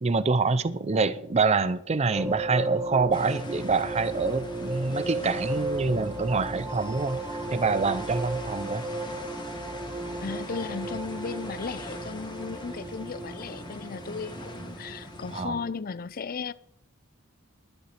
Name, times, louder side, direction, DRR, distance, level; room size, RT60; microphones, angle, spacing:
voice 1, 0.0-8.8 15.3-15.6, right 4 dB, 30° right, 0.5 m, -26 dB
sound 1, 2.1-15.7, right 2 dB, 15° right, 1.0 m, -35 dB
sound 2, 3.1-15.4, left 1 dB, 20° left, 2.0 m, -43 dB
voice 2, 10.2-16.5, left 5 dB, 40° left, 0.5 m, -35 dB
11.5 x 10.5 x 5.9 m
head